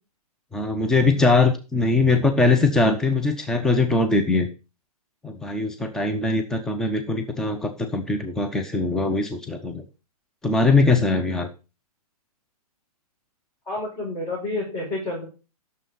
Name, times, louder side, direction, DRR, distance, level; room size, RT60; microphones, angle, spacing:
voice 1, 0.5-4.5 5.2-9.8 10.4-11.5, left 3 dB, 5° left, 5 dB, 0.7 m, -21 dB
voice 2, 13.7-15.3, left 2 dB, 20° left, -4 dB, 6.6 m, -29 dB
12.5 x 6.9 x 4.0 m, 0.31 s
hypercardioid pair, 135°, 20 cm